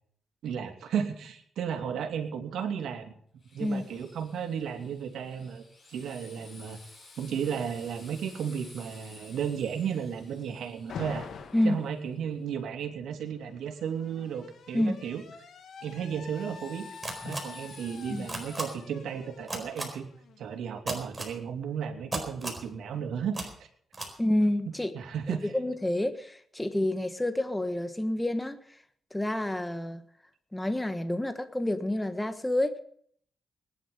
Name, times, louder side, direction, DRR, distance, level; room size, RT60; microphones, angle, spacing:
voice 1, 0.4-3.1 3.5-5.6 5.9-6.8 7.2-11.3 11.6-15.2 15.8-16.9 17.2-20.1 20.4-23.7 24.9-25.5, right 7 dB, 90° right, 5 dB, 2.7 m, -34 dB
Drill, 3.4-12.3 15.7-18.7, left 3 dB, 35° left, 7.4 m, -54 dB
Alarm, 10.9-11.9 13.1-20.8, left 6 dB, 65° left, 1.9 m, -46 dB
sound 1, 17.0-17.4 18.3-18.6 19.5-19.8 20.9-21.3 22.1-22.6 23.3-23.4 23.9-24.1, right 2 dB, 10° right, 4.3 m, -33 dB
voice 2, 24.2-24.9 25.3-28.8 29.1-30.0 30.5-32.8, left 1 dB, 10° left, 9 dB, 1.2 m, -29 dB
20.5 x 11.0 x 5.5 m, 0.62 s
cardioid pair, 130°, 0 cm